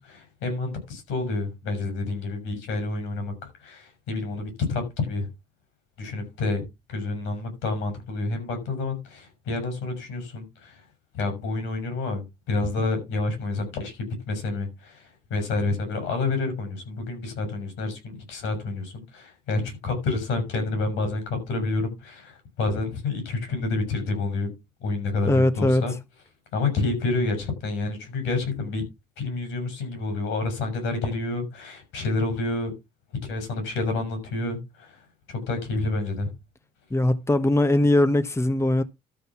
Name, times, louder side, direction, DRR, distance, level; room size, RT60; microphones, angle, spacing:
voice 1, 0.0-3.3 3.6-5.3 6.0-10.8 11.1-24.5 24.8-25.9 26.5-28.8 29.2-32.7 33.2-35.0 35.3-36.3, left 3 dB, 75° left, 6.2 m, -29 dB
voice 2, 25.3-25.8 36.9-38.8, left 1 dB, 15° left, 1.1 m, -20 dB
13.0 x 5.3 x 5.9 m
hypercardioid pair, 45°, 20 cm